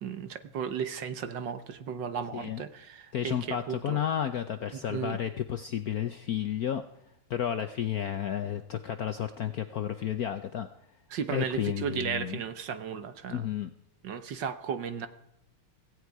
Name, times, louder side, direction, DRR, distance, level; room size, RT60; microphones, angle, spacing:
voice 1, 0.0-4.0 4.7-5.2 11.1-13.5 14.0-15.1, right 7 dB, 60° right, 11 dB, 1.6 m, -35 dB
voice 2, 3.1-6.8 7.3-10.7 11.3-12.4 13.3-13.7, left 9 dB, 65° left, 9 dB, 0.9 m, -32 dB
17.5 x 16.0 x 4.8 m, 0.80 s
omnidirectional pair, 2.4 m